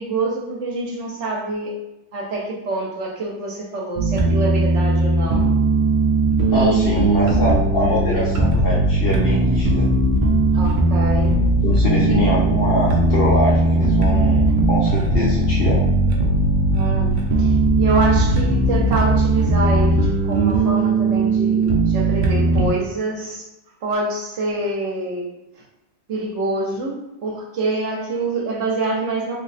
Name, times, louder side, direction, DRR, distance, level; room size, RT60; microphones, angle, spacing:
voice 1, 0.0-1.7 2.1-5.6 6.5-7.3 8.2-8.3 10.5-11.3 11.9-12.3 16.7-23.4 23.8-25.3 25.5-25.6 26.1-29.4, right 2 dB, 75° right, -2 dB, 1.0 m, -26 dB
sound 1, 4.0-22.7, right 3 dB, 55° right, 0.6 m, -19 dB
sound 2, 6.2-20.1, left 4 dB, 85° left, 1.0 m, -26 dB
voice 2, 6.5-9.9 11.6-15.8, left 1 dB, 60° left, -5 dB, 0.8 m, -23 dB
3.3 x 2.1 x 4.0 m, 0.93 s
omnidirectional pair, 1.3 m